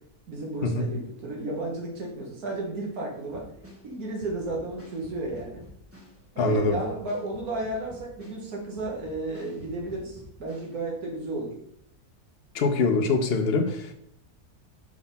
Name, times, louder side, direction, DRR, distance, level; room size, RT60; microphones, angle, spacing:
voice 1, 0.3-3.5 3.8-5.6 6.4-11.5, right 2 dB, 75° right, -1 dB, 1.9 m, -33 dB
sound 1, 3.3-10.8, left 1 dB, 10° right, 0.9 m, -49 dB
voice 2, 6.4-6.8 12.5-13.9, left 4 dB, 55° left, 7 dB, 0.7 m, -24 dB
6.0 x 3.9 x 4.0 m, 0.71 s
omnidirectional pair, 1.6 m